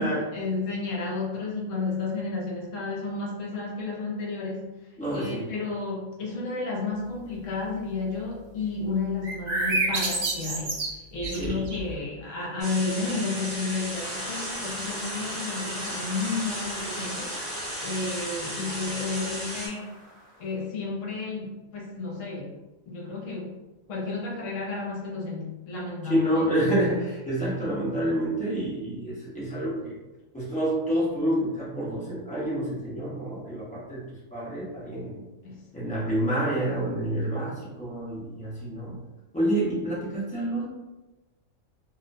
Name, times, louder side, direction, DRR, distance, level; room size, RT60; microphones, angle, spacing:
voice 1, 0.0-19.9 20.4-22.6 22.9-23.6 23.9-26.5 35.4-35.9, left 3 dB, 70° left, -3 dB, 1.0 m, -32 dB
voice 2, 5.0-5.4 11.4-11.6 26.0-30.0 30.3-34.0 34.3-35.2 35.7-39.0 39.3-40.7, right 1 dB, 10° left, -9 dB, 0.5 m, -28 dB
sound 1, 9.2-11.9, right 2 dB, 65° right, 0.4 m, -28 dB
sound 2, 12.6-19.7, equal, 30° right, 0.7 m, -35 dB
sound 3, 13.9-20.6, equal, 50° left, 1.1 m, -42 dB
2.4 x 2.1 x 2.5 m, 1.1 s
omnidirectional pair, 1.4 m